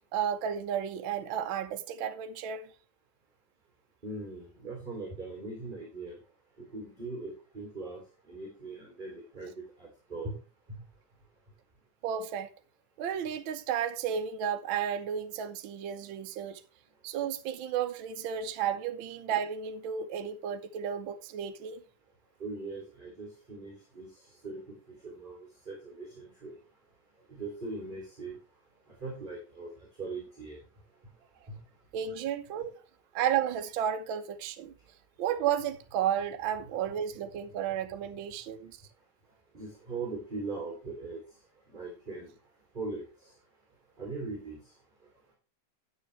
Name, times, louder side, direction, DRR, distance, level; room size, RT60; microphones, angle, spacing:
voice 1, 0.1-2.7 12.0-12.5 13.0-16.6 17.0-21.8 31.9-32.8 33.1-34.7 35.2-38.8, right 9 dB, 75° right, 1.1 m, -32 dB
voice 2, 4.0-6.2 6.7-8.0 8.3-10.4 10.7-10.8 22.4-24.1 24.4-24.8 25.0-25.4 25.7-26.6 27.3-28.3 29.0-29.7 30.0-30.6 31.5-31.6 39.5-41.2 41.7-42.3 42.7-43.3 44.0-44.6, right 3 dB, 15° right, 2.7 m, -40 dB
9.5 x 9.1 x 3.2 m
omnidirectional pair, 3.4 m